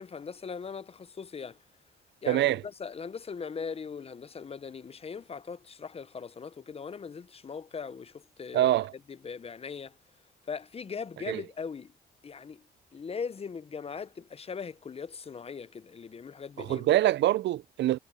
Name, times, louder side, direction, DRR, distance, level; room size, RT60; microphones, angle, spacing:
voice 1, 0.0-1.6 2.2-8.7 9.1-10.0 10.5-11.9 12.2-12.6 12.9-16.9, left 6 dB, 30° left, 0.6 m, -40 dB
voice 2, 2.3-2.6 8.5-8.9 11.3-11.4 16.6-18.0, right 14 dB, 65° right, 0.4 m, -25 dB
cardioid pair, 90°, 20 cm